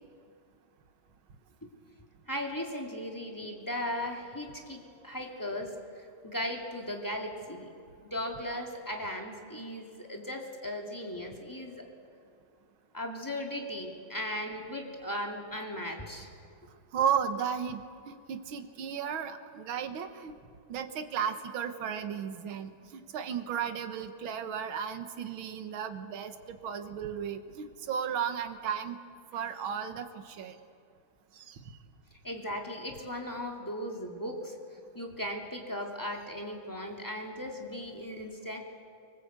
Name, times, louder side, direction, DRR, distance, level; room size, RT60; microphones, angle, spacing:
voice 1, 2.3-11.9 12.9-16.3 29.3-29.4 32.2-34.6 34.9-38.6, left 1 dB, 10° left, 1 dB, 2.6 m, -37 dB
voice 2, 16.9-20.3 20.7-29.0 29.3-30.6 31.4-31.6, right 8 dB, 70° right, 8 dB, 2.0 m, -34 dB
25.5 x 24.5 x 8.2 m, 2.4 s
omnidirectional pair, 2.3 m